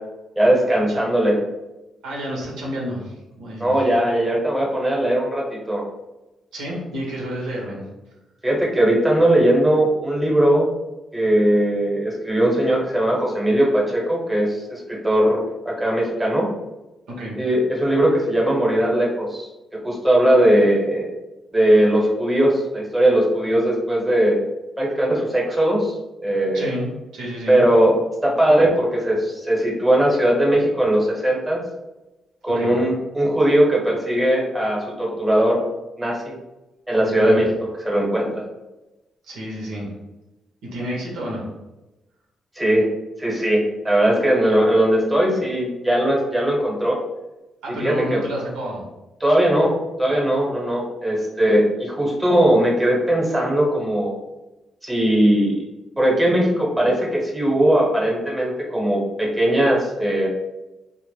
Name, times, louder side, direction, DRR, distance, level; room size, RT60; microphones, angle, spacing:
voice 1, 0.4-1.4 3.6-5.9 8.4-10.7 11.1-16.5 17.4-19.5 19.8-21.1 21.5-24.4 24.8-25.9 26.2-26.7 27.5-27.9 28.2-31.6 32.4-35.6 36.0-36.4 36.9-37.5 37.8-38.4 42.5-42.9 43.2-47.0 47.7-48.2 49.2-49.7 50.0-54.1 54.8-55.6 56.0-60.3, right 1 dB, 10° right, -3 dB, 0.9 m, -19 dB
voice 2, 2.0-3.7 6.5-7.9 17.1-17.4 26.5-26.9 27.1-27.6 32.5-32.7 37.0-37.4 39.2-39.9 40.6-41.5 47.6-48.8, equal, 85° right, -3 dB, 0.7 m, -30 dB
2.0 x 2.0 x 3.1 m, 1.0 s
supercardioid pair, 65°, 0 cm